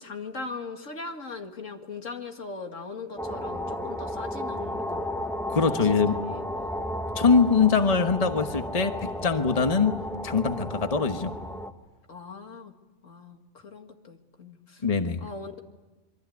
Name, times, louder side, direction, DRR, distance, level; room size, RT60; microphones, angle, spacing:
voice 1, 0.0-5.1 5.6-6.4 12.1-12.7 13.0-14.8 15.2-15.6, left 4 dB, 90° left, 4 dB, 2.5 m, -40 dB
sound 1, 3.2-11.7, left 1 dB, ahead, 1.3 m, -33 dB
voice 2, 5.5-6.2 7.2-10.0 10.2-11.3 14.8-15.2, left 5 dB, 30° left, 7 dB, 1.3 m, -23 dB
27.0 x 23.5 x 9.4 m, 1.2 s
omnidirectional pair, 1.3 m